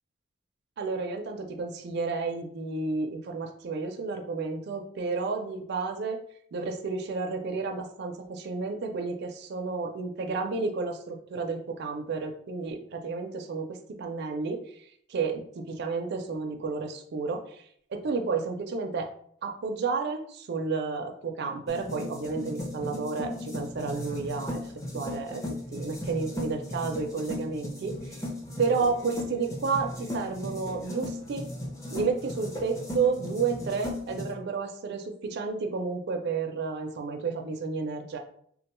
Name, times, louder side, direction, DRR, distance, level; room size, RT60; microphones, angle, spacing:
voice 1, 0.8-6.2 6.5-17.6 17.9-19.1 19.4-24.6 24.9-25.4 25.7-28.2 28.6-31.5 31.9-38.2, right 4 dB, 55° right, 3 dB, 0.4 m, -31 dB
sound 1, 21.7-34.3, left 1 dB, 15° left, 0.5 m, -36 dB
3.5 x 2.2 x 2.9 m, 0.63 s
head